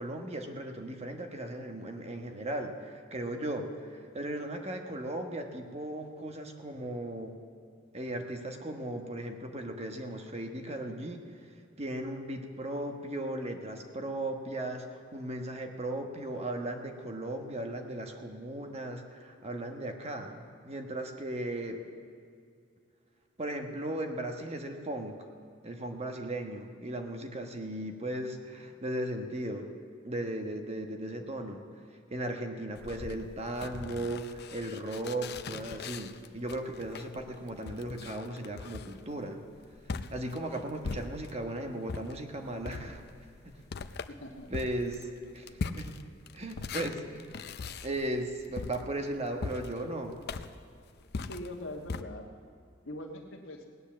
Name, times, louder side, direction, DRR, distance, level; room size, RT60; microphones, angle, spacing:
voice 1, 0.0-7.4 7.9-11.2 11.8-21.8 23.4-25.2 25.6-29.7 30.0-31.6 31.9-39.4 40.1-43.0 44.5-45.0 45.3-45.5 45.7-46.0 46.3-47.3 47.8-50.1, right 1 dB, 35° right, 4 dB, 1.2 m, -37 dB
sound 1, 32.7-41.5 41.9-52.0, left 4 dB, 55° left, 0.6 m, -41 dB
voice 2, 44.1-44.5 51.3-52.3 52.8-53.7, left 1 dB, 75° left, 1 dB, 1.4 m, -42 dB
18.0 x 9.7 x 7.4 m, 2.3 s
head